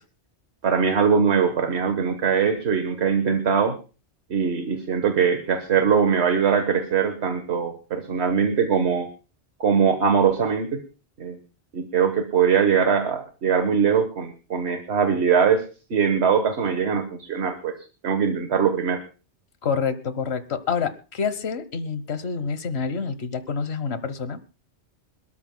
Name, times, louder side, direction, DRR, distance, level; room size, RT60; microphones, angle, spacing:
voice 1, 0.6-3.7 4.3-9.1 9.6-10.8 11.2-11.4 11.7-15.6 15.9-17.8 18.0-19.0, right 6 dB, 70° right, 7 dB, 1.5 m, -21 dB
voice 2, 19.6-24.4, left 5 dB, 70° left, 12 dB, 1.3 m, -27 dB
26.0 x 13.0 x 2.2 m, 0.33 s
omnidirectional pair, 1.2 m